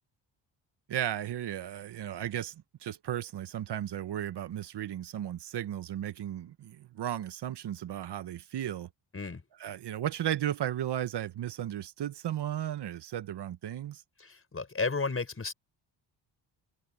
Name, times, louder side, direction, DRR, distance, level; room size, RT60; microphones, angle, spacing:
voice 1, 0.9-8.9 9.6-14.0, right 11 dB, 60° right, 1.2 m, -35 dB
voice 2, 14.2-15.5, left 4 dB, 30° left, 6.4 m, -33 dB
cardioid pair, 85°, 45 cm